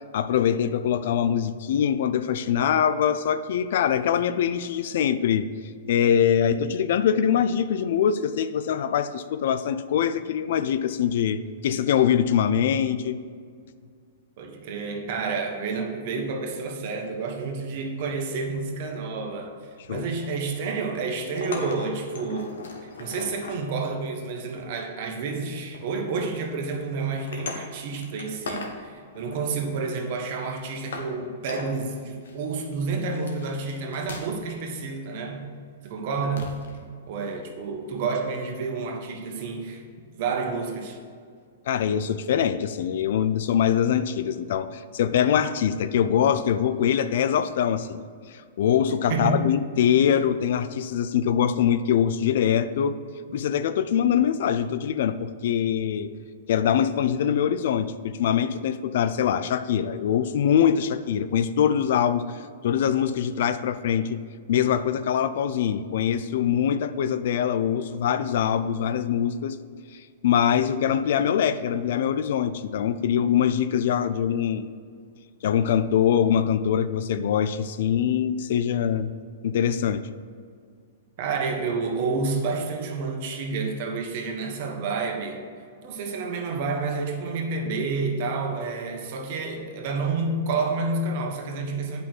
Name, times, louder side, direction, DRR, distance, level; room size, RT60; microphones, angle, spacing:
voice 1, 0.1-5.5 5.9-13.2 19.9-20.1 41.7-53.0 53.3-56.1 56.5-64.2 64.5-69.6 69.9-74.7 75.4-79.1 79.4-80.1, left 9 dB, 65° left, 13 dB, 0.5 m, -23 dB
voice 2, 14.4-19.5 19.9-22.6 22.8-35.5 35.8-36.5 37.1-39.8 40.2-41.0 49.1-49.4 81.2-85.4 85.8-92.0, right 4 dB, 50° right, 3 dB, 1.5 m, -29 dB
sound 1, 19.8-20.7 21.2-23.6 24.6-25.2 25.7-26.0 26.4-26.6 27.2-28.8 29.1-29.9 30.4-30.5 30.9-31.1 31.5-31.8 32.2-32.7 33.0-34.5 34.8-35.0 36.4-36.8 38.3-38.4, left 3 dB, 85° left, 1.4 m, -39 dB
8.7 x 5.6 x 6.2 m, 2.1 s
hypercardioid pair, 150°, 0 cm